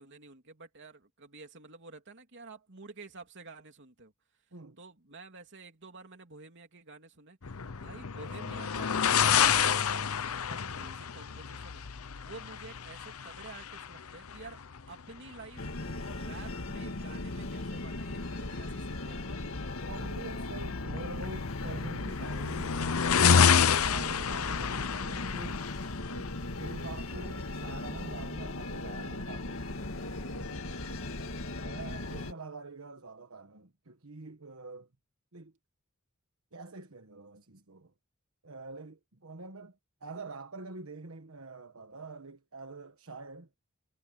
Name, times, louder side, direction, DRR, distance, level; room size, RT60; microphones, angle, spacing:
voice 1, 0.0-4.1 4.8-14.6 14.9-19.3 30.8-31.1, right 3 dB, 55° right, 3.2 m, -50 dB
sound 1, 7.4-27.1, left 7 dB, 85° left, 0.8 m, -30 dB
sound 2, 15.6-32.3, left 2 dB, 70° left, 1.9 m, -38 dB
voice 2, 19.9-25.6 26.1-29.6 31.6-34.9 35.3-35.5 36.5-37.9 38.4-43.5, right 3 dB, 75° right, 1.4 m, -46 dB
head